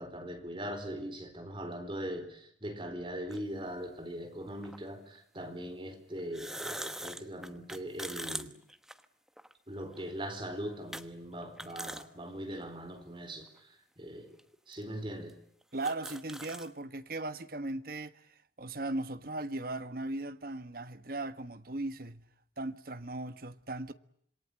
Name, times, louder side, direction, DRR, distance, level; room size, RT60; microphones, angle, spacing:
voice 1, 0.0-8.5 9.7-14.4 14.7-15.4, equal, 25° right, 4.3 m, -41 dB
sound 1, 3.3-3.4 4.6-4.8 6.2-9.5 9.9-10.0 10.9-11.1 11.4-12.1 12.5-12.6 13.5-13.6 14.4-14.5 14.7-14.8 15.3-15.4 15.6-16.7, right 1 dB, 5° right, 1.2 m, -42 dB
voice 2, 15.7-22.2 22.6-23.9, right 2 dB, 50° right, 1.4 m, -38 dB
27.0 x 23.5 x 8.6 m
head